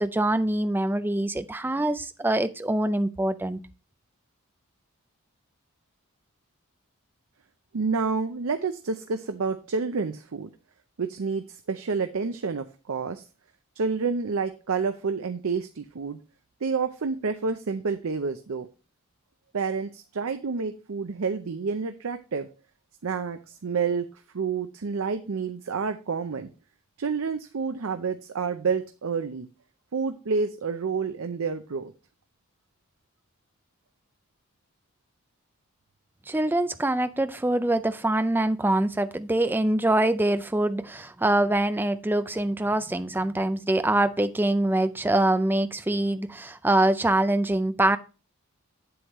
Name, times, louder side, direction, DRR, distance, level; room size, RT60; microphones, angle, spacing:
voice 1, 0.0-3.6 36.3-48.0, right 1 dB, 10° right, 0.3 m, -24 dB
voice 2, 7.7-10.5 11.0-13.2 13.8-16.2 16.6-18.7 19.5-22.5 23.0-24.1 24.3-26.5 27.0-29.5 29.9-31.9, right 5 dB, 75° right, 0.6 m, -29 dB
8.0 x 7.8 x 3.0 m
head